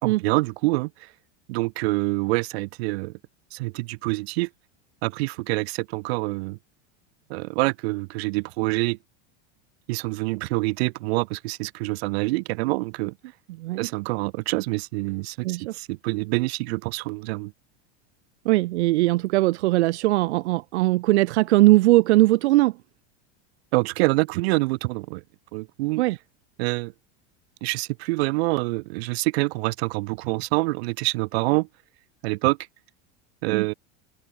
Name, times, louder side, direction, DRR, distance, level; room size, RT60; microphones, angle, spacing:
voice 1, 0.0-1.1 1.5-3.1 3.5-4.5 5.0-6.6 7.3-9.0 9.9-13.1 13.8-17.5 23.7-25.2 25.5-26.0 26.6-26.9 27.6-31.7 32.2-32.6 33.4-33.7, right 24 dB, 65° right, 4.2 m, -26 dB
voice 2, 13.6-13.9 15.4-15.8 18.4-22.8 26.0-26.2 33.5-33.7, right 18 dB, 85° right, 2.4 m, -20 dB
open air
supercardioid pair, 160°, 33 cm